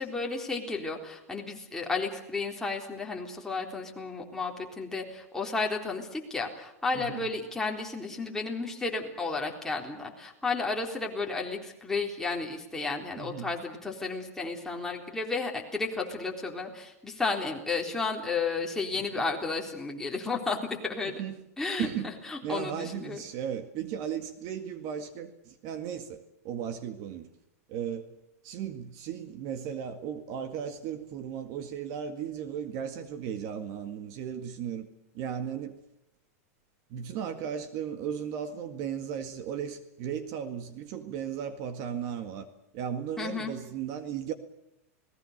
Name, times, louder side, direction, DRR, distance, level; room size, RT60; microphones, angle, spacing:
voice 1, 0.0-20.6 20.8-21.2 21.6-21.9 22.3-23.2 43.2-43.5, left 4 dB, 5° left, 3.8 m, -32 dB
voice 2, 13.2-13.5 18.9-19.2 21.1-21.4 21.8-22.2 22.4-27.3 27.7-28.1 28.4-34.9 35.1-35.8 36.9-42.5 42.7-44.3, right 8 dB, 45° right, 2.0 m, -36 dB
29.5 x 19.5 x 6.7 m
supercardioid pair, 140°, 8 cm